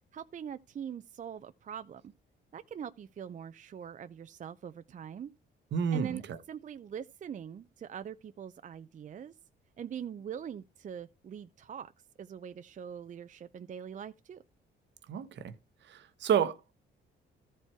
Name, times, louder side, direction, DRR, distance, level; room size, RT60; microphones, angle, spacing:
voice 1, 0.1-2.1 2.5-5.3 5.9-6.2 6.5-9.3 9.8-11.9 12.2-14.4, right 8 dB, 40° right, 0.5 m, -42 dB
voice 2, 5.7-6.2 15.1-15.5 15.9-16.7, right 8 dB, 65° right, 1.0 m, -30 dB
13.5 x 4.5 x 4.4 m
cardioid pair, 90°, 20 cm